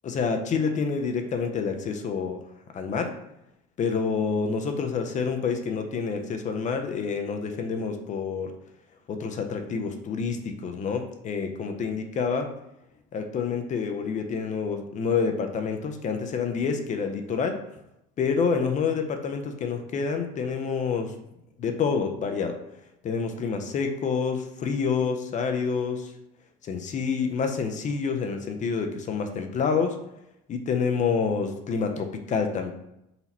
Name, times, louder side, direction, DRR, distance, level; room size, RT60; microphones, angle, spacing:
voice 1, 0.0-2.4 2.7-3.1 3.8-8.5 9.1-12.5 13.1-17.6 18.2-21.1 21.6-22.6 23.0-26.1 26.6-30.0 30.5-32.7, left 5 dB, 35° left, 5 dB, 0.6 m, -28 dB
4.0 x 2.9 x 4.1 m, 0.83 s
cardioid pair, 120°, 21 cm